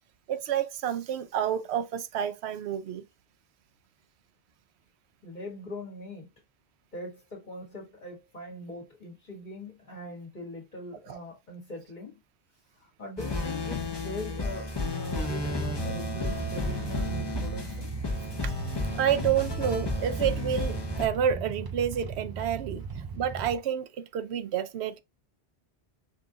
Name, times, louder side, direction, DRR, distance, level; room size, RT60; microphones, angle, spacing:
voice 1, 0.3-3.0 11.1-11.2 18.4-18.5 18.9-25.0, right 9 dB, 90° right, 0.9 m, -29 dB
voice 2, 5.2-6.3 6.9-12.2 12.7-17.9, left 1 dB, 45° left, 1.7 m, -41 dB
sound 1, 13.2-21.1, left 2 dB, 25° left, 0.9 m, -33 dB
sound 2, 15.3-23.5, right 5 dB, 40° right, 0.3 m, -37 dB
5.3 x 2.5 x 3.8 m
omnidirectional pair, 1.1 m